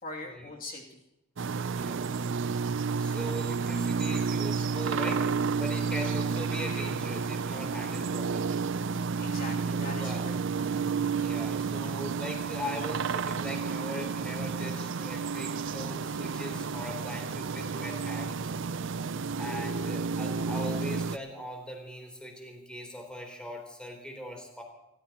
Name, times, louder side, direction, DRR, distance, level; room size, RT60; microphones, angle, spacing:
voice 1, 0.0-1.0 9.2-10.7, left 2 dB, 45° left, -1 dB, 2.7 m, -42 dB
sound 1, 1.4-21.2, right 5 dB, 60° right, 0.5 m, -31 dB
voice 2, 3.0-5.2 5.5-8.6 9.7-10.2 11.2-18.5 19.4-24.6, equal, 5° left, 1 dB, 3.6 m, -40 dB
29.5 x 14.5 x 3.0 m, 0.92 s
head